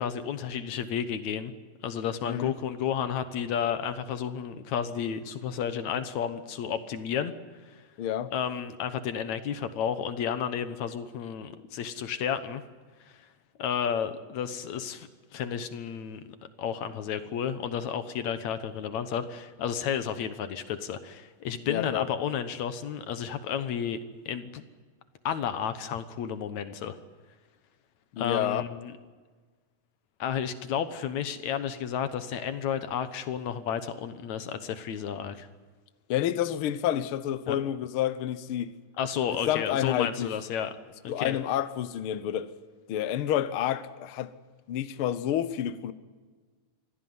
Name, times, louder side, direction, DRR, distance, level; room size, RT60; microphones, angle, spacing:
voice 1, 0.0-1.5 1.8-7.3 8.3-12.6 13.6-15.1 15.3-16.2 16.6-24.0 24.3-24.6 25.2-27.0 28.2-28.9 30.2-35.5 37.5-37.6 39.0-40.8 41.0-41.4, left 8 dB, 65° left, 2.2 m, -32 dB
voice 2, 8.0-8.3 21.7-22.1 28.1-28.6 36.1-38.7 39.5-40.3 41.1-42.5 42.9-44.3 44.7-45.9, left 11 dB, 90° left, 1.1 m, -29 dB
24.5 x 16.5 x 9.5 m
omnidirectional pair, 3.9 m